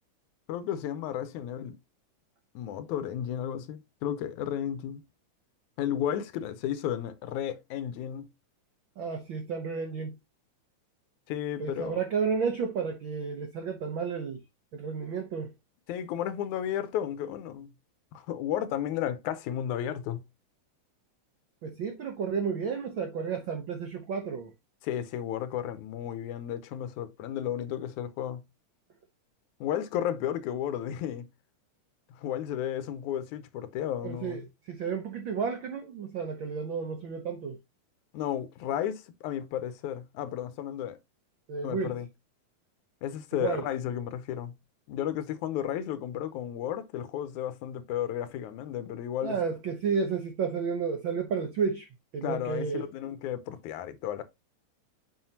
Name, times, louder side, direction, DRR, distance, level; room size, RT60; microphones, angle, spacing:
voice 1, 0.5-1.8 2.6-5.1 5.8-8.3 11.3-12.0 15.9-17.7 18.1-20.2 24.8-28.4 29.6-31.3 32.1-34.5 38.1-41.0 41.6-42.1 43.0-44.5 44.9-49.4 52.2-54.2, left 10 dB, 85° left, 2.2 m, -33 dB
voice 2, 9.0-10.1 11.6-14.4 14.7-15.5 21.6-24.5 34.0-34.4 34.7-37.6 41.5-41.9 43.3-43.6 49.2-51.9 52.1-52.8, right 6 dB, 85° right, 1.0 m, -32 dB
7.6 x 5.2 x 2.8 m
omnidirectional pair, 3.4 m